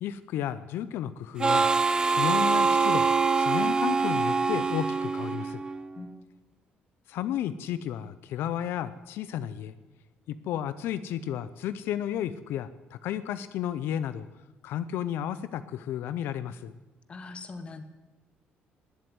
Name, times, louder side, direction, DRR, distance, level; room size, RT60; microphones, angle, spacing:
voice 1, 0.0-1.7 2.0-3.1 3.4-5.6 7.1-9.7 10.3-14.3 14.6-16.7, left 10 dB, 80° left, 14 dB, 0.6 m, -32 dB
Harmonica, 1.4-5.9, right 4 dB, 20° right, 0.6 m, -24 dB
voice 2, 17.1-17.8, left 3 dB, 30° left, 9 dB, 1.4 m, -41 dB
19.5 x 7.8 x 9.3 m, 1.1 s
cardioid pair, 140°, 4 cm